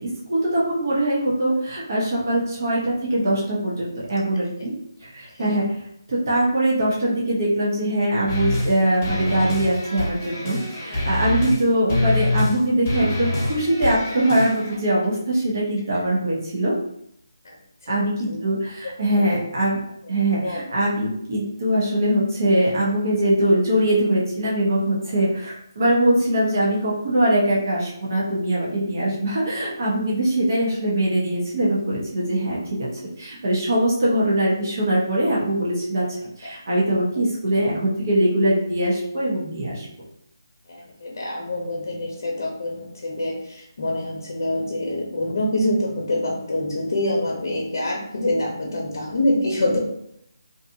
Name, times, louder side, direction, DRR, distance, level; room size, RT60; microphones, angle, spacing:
voice 1, 0.0-4.7 5.0-5.8 6.1-16.8 17.9-19.8 20.1-36.0 36.4-39.9, right 1 dB, 50° right, -6 dB, 0.9 m, -22 dB
sound 1, 8.3-8.7 9.0-11.6 11.9-12.6 12.8-14.8, left 1 dB, 25° left, 0.9 m, -25 dB
voice 2, 40.7-49.8, left 1 dB, 60° left, -2 dB, 0.7 m, -25 dB
2.7 x 2.3 x 2.7 m, 0.74 s
figure-of-eight pair, 165°, 2 cm